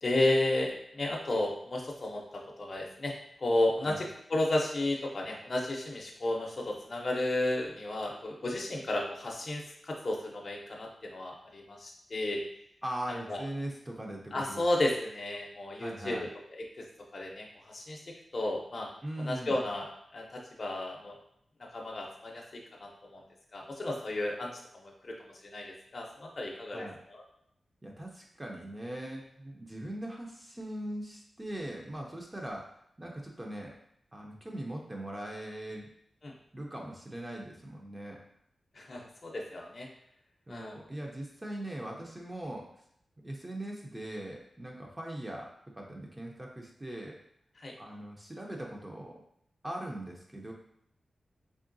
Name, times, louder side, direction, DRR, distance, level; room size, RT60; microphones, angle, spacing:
voice 1, 0.0-3.1 3.4-4.0 4.3-12.4 13.3-13.4 14.3-16.3 16.6-16.8 17.1-18.0 18.3-18.9 19.2-21.2 21.7-23.2 23.5-27.2 36.2-36.3 38.7-39.9 40.5-40.8 47.6-47.7, left 1 dB, 45° left, -1 dB, 0.5 m, -33 dB
voice 2, 12.8-14.6 15.8-16.3 19.0-19.6 26.7-27.0 27.8-32.6 33.0-33.7 34.1-35.9 36.5-38.2 40.5-42.7 43.2-45.5 45.8-47.2 47.8-49.2 49.6-50.5, right 1 dB, 15° right, -1 dB, 0.5 m, -40 dB
3.6 x 3.2 x 2.6 m, 0.71 s
wide cardioid pair, 125°, 0 cm